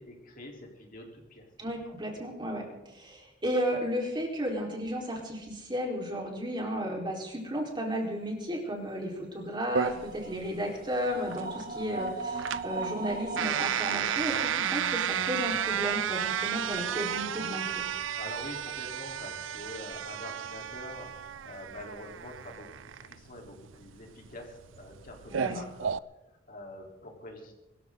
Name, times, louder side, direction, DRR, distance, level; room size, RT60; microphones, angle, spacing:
voice 1, 0.0-1.5 18.2-25.9 26.5-27.5, left 1 dB, 45° left, 1 dB, 3.8 m, -45 dB
voice 2, 1.6-17.8 25.3-25.6, equal, 25° right, -1 dB, 4.3 m, -33 dB
sound 1, 9.7-20.6 21.2-21.7, right 3 dB, 55° right, 1.9 m, -40 dB
sound 2, 9.7-26.0, right 9 dB, 80° right, 0.5 m, -33 dB
23.5 x 14.0 x 3.9 m, 0.96 s
head